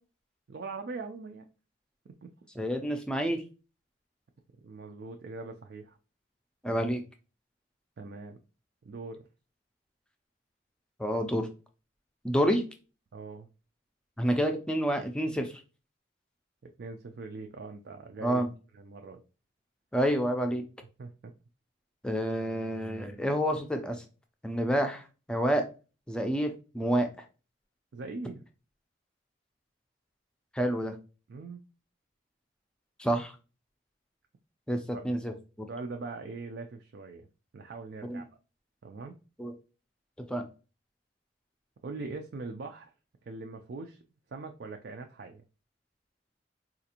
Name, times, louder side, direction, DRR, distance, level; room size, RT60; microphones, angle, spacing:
voice 1, 0.5-1.5 2.1-2.3 4.6-6.0 8.0-8.4 8.8-9.3 13.1-13.5 16.8-18.4 18.7-19.2 21.0-21.3 27.9-28.4 31.3-31.6 34.9-35.0 35.7-37.3 37.5-38.3 38.8-39.2 41.8-42.9 43.2-44.0 44.3-45.4, right 3 dB, 60° right, 4 dB, 0.4 m, -41 dB
voice 2, 2.6-3.4 6.6-7.0 11.0-11.5 12.2-12.6 14.2-15.5 18.2-18.5 19.9-20.6 22.0-24.0 24.4-25.6 26.1-27.1 30.5-31.0 33.0-33.4 34.7-35.3 38.0-38.2 39.4-39.5 40.3-40.5, equal, 5° left, 5 dB, 0.4 m, -28 dB
4.2 x 2.4 x 2.8 m, 0.33 s
head